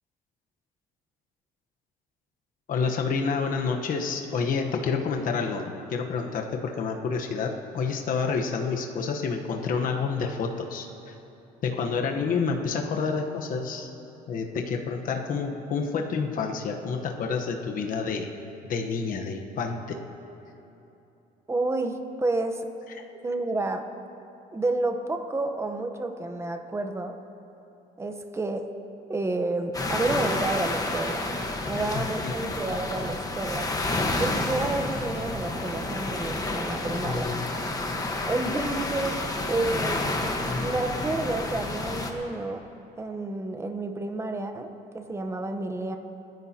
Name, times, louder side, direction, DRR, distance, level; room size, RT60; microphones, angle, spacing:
voice 1, 2.7-10.9 11.6-13.9 14.3-18.3 18.7-20.0 31.9-32.3 37.0-37.6, left 5 dB, 55° left, 3 dB, 1.1 m, -29 dB
voice 2, 21.5-22.7 23.2-23.9 24.5-27.2 28.0-28.7 29.1-31.3 31.7-33.7 34.2-37.3 38.3-39.2 39.5-40.1 40.6-42.6 43.0-46.0, right 2 dB, 15° right, 6 dB, 0.9 m, -30 dB
sound 1, 29.7-42.1, left 2 dB, 20° left, 1.2 m, -30 dB
27.0 x 10.5 x 2.9 m, 2.9 s
cardioid pair, 110°, 17 cm